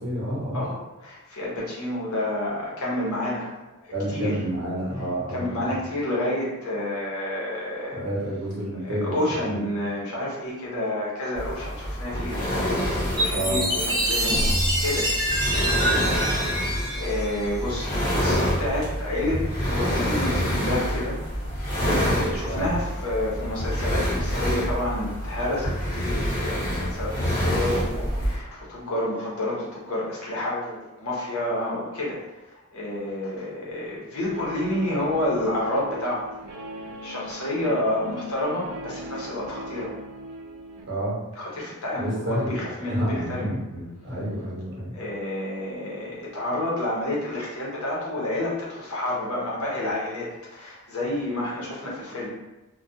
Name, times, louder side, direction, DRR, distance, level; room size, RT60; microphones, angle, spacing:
voice 1, 0.0-0.7 3.9-5.7 7.9-9.2 9.4-9.6 13.3-13.7 22.4-22.8 40.9-41.2 41.9-42.6 42.9-44.9, equal, 50° right, -6 dB, 0.8 m, -29 dB
voice 2, 0.5-3.5 3.8-4.4 5.3-8.0 8.7-12.5 13.0-15.1 16.2-19.4 19.7-21.2 21.8-32.2 32.5-36.3 37.0-39.9 41.4-43.5 44.9-52.3, left 1 dB, 80° left, -5 dB, 0.9 m, -29 dB
sound 1, 11.4-28.4, equal, 40° left, 1.1 m, -27 dB
Chime, 13.2-17.9, right 1 dB, 20° right, 0.5 m, -26 dB
Guitar, 34.3-40.8, right 1 dB, 85° right, 0.4 m, -39 dB
2.3 x 2.3 x 2.6 m, 1.0 s
head